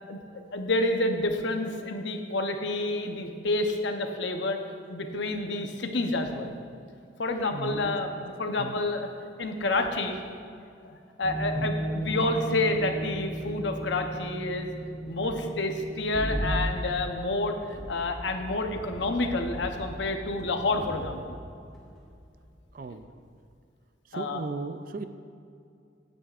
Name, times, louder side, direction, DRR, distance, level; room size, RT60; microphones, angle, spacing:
voice 1, 0.5-4.6 4.9-6.5 7.2-9.1 9.4-10.2 10.8-14.7 15.1-21.4 24.1-24.4, left 2 dB, 65° left, 5 dB, 0.8 m, -29 dB
voice 2, 7.5-8.3 8.6-8.7 11.5-11.7 22.7-23.1 24.1-25.0, right 3 dB, 45° right, 9 dB, 0.4 m, -36 dB
sound 1, 11.2-22.7 23.0-23.3, equal, 5° left, 1.8 m, -36 dB
15.5 x 8.9 x 2.5 m, 2.4 s
head